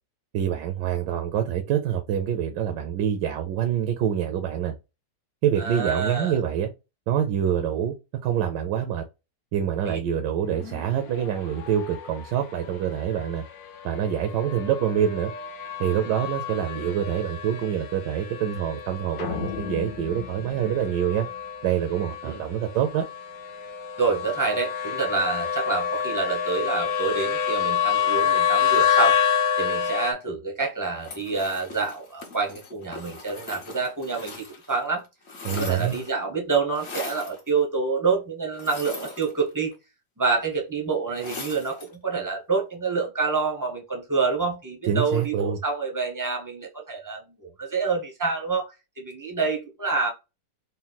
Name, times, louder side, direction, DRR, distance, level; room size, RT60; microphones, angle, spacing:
voice 1, 0.3-4.7 5.4-6.7 7.1-7.9 8.2-9.0 9.5-13.4 13.8-15.3 15.8-21.3 21.6-23.0 35.4-36.0 44.9-45.6, right 9 dB, 80° right, 1.2 m, -26 dB
voice 2, 5.6-6.4 9.8-10.0 22.2-22.4 24.0-29.2 29.6-35.0 35.5-39.7 40.2-50.1, right 4 dB, 20° right, 0.5 m, -27 dB
sound 1, 10.4-30.1, left 8 dB, 65° left, 1.1 m, -28 dB
sound 2, 19.2-21.6, left 9 dB, 80° left, 1.4 m, -36 dB
sound 3, 31.0-34.8 35.0-36.2 36.7-37.4 38.5-39.7 41.1-41.9, left 3 dB, 45° left, 1.1 m, -39 dB
4.0 x 2.2 x 3.9 m
omnidirectional pair, 1.9 m